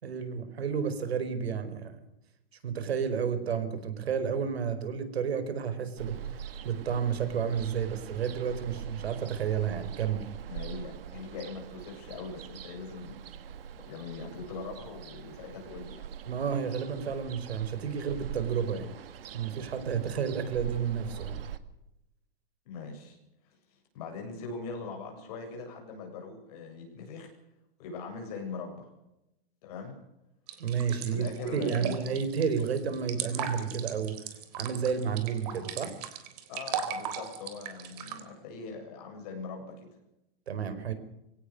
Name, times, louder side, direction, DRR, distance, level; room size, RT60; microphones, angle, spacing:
voice 1, 0.0-1.9 2.6-6.1 6.6-10.3 16.3-18.9 19.3-21.4 30.6-31.3 31.5-34.2 34.6-35.9 40.5-40.9, right 7 dB, 90° right, 11 dB, 5.0 m, -31 dB
Ocean, 6.0-21.6, right 9 dB, 65° right, 1.9 m, -43 dB
voice 2, 10.4-13.2 13.8-16.1 22.6-23.2 23.4-23.5 23.9-27.3 27.8-28.9 29.6-30.0 31.0-32.0 36.5-39.9, left 4 dB, 40° left, 2 dB, 7.8 m, -41 dB
sound 1, 30.5-38.2, right 8 dB, 40° right, 3.7 m, -37 dB
23.5 x 17.5 x 6.8 m, 0.89 s
hypercardioid pair, 170°, 30 cm